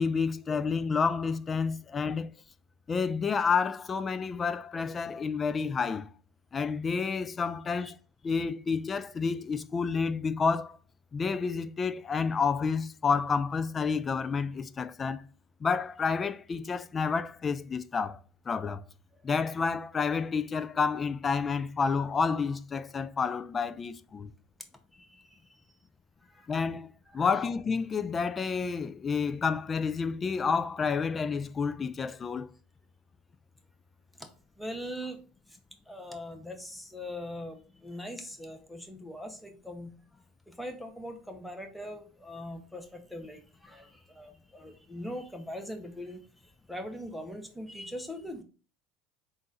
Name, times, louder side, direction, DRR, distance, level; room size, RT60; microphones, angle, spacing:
voice 1, 0.0-2.3 2.9-6.1 6.5-8.0 8.2-10.8 11.1-15.2 15.6-18.2 18.5-18.8 19.2-24.3 26.5-32.5, left 5 dB, 30° left, 0.3 m, -29 dB
voice 2, 24.9-25.4 26.3-26.5 27.1-27.3 34.6-35.2 35.9-39.9 40.5-46.2 46.7-48.4, equal, 5° left, 0.8 m, -41 dB
3.8 x 2.5 x 3.9 m
supercardioid pair, 100°, 0 cm